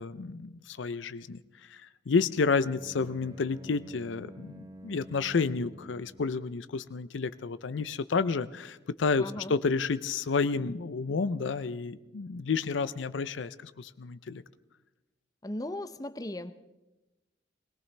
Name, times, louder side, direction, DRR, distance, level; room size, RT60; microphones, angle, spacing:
voice 1, 0.0-1.4 1.7-14.4, left 4 dB, 85° left, 14 dB, 0.5 m, -30 dB
Bowed string instrument, 2.3-6.4, right 1 dB, 20° right, 1.0 m, -50 dB
voice 2, 9.2-9.5 15.4-16.5, left 1 dB, 20° left, 12 dB, 0.6 m, -37 dB
20.5 x 18.5 x 3.3 m, 1.0 s
head